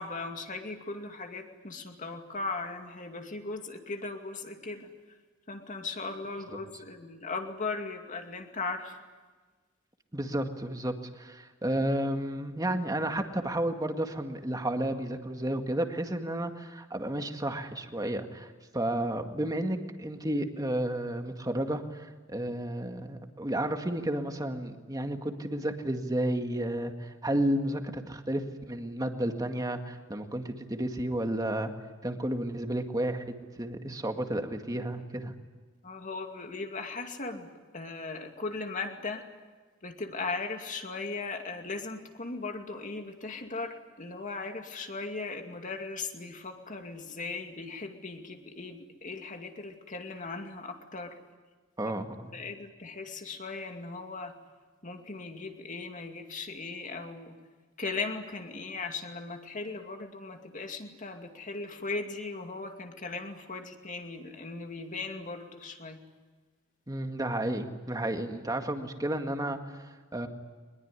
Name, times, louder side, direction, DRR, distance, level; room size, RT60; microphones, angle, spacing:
voice 1, 0.0-4.9 5.5-9.0 35.8-39.3 39.8-51.2 52.3-54.4 54.8-57.4 57.8-66.0, left 3 dB, 40° left, 4 dB, 2.4 m, -38 dB
voice 2, 10.1-31.7 32.0-35.3 51.8-52.3 66.9-70.3, right 1 dB, 20° right, 5 dB, 2.0 m, -32 dB
23.5 x 21.0 x 9.8 m, 1.4 s
head